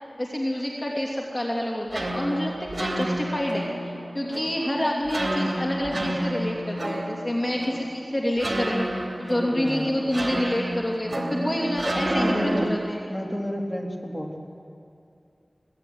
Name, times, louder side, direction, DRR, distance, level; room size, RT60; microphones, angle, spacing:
voice 1, 0.2-13.0, left 1 dB, 35° left, -2 dB, 2.8 m, -28 dB
sound 1, 1.5-12.7, right 1 dB, 50° right, 3.5 m, -30 dB
voice 2, 9.3-9.9 12.1-12.7 13.1-14.4, equal, 15° left, 0 dB, 3.4 m, -30 dB
22.5 x 17.5 x 9.6 m, 2.6 s
wide cardioid pair, 60°, 0 cm